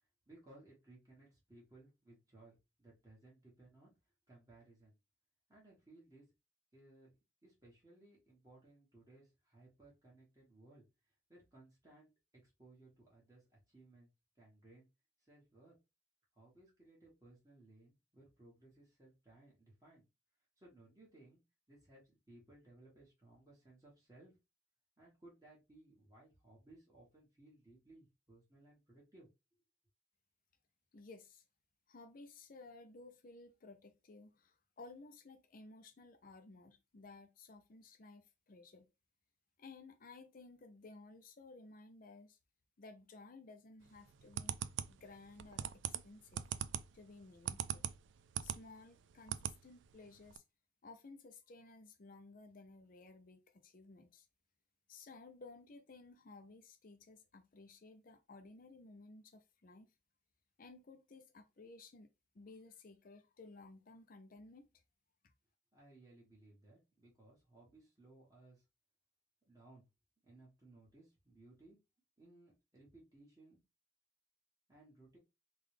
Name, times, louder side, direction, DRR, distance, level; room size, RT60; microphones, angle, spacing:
voice 1, 0.3-3.9 4.3-4.9 5.5-6.2 6.7-7.1 7.4-10.8 11.3-14.1 14.4-14.9 15.2-15.7 16.3-20.1 20.6-21.4 21.7-24.4 25.0-29.3 65.7-68.6 69.5-69.9 70.2-71.8 72.2-73.6 74.7-75.2, right 2 dB, 20° right, 1.3 m, -62 dB
voice 2, 30.9-31.4 31.9-38.9 39.6-42.4 42.8-44.5 44.9-46.4 46.9-47.9 48.4-50.4 50.8-54.3 54.9-59.9 60.6-62.1 62.3-64.7 65.2-65.3, left 3 dB, 45° left, 0.5 m, -56 dB
sound 1, 44.0-48.6 49.0-49.6 49.9-50.0 50.3-50.4, right 10 dB, 75° right, 0.3 m, -40 dB
3.8 x 2.4 x 3.2 m
head